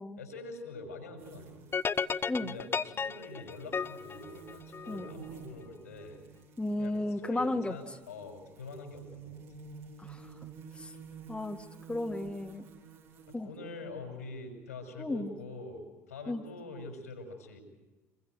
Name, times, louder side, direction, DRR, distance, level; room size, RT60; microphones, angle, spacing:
voice 1, 0.2-1.7 2.4-6.2 6.8-9.4 13.3-17.6, left 2 dB, 80° left, 5 dB, 5.5 m, -45 dB
sound 1, 1.2-13.3, right 6 dB, 65° right, 6.1 m, -51 dB
sound 2, 1.7-5.1, left 6 dB, 30° left, 1.0 m, -34 dB
voice 2, 6.6-7.7 10.0-10.3 10.7-10.9 11.3-12.7 13.3-13.5 15.0-15.3 16.3-16.4, left 2 dB, 10° left, 3 dB, 1.8 m, -34 dB
27.0 x 23.0 x 7.9 m, 1.2 s
figure-of-eight pair, 60°, 8 cm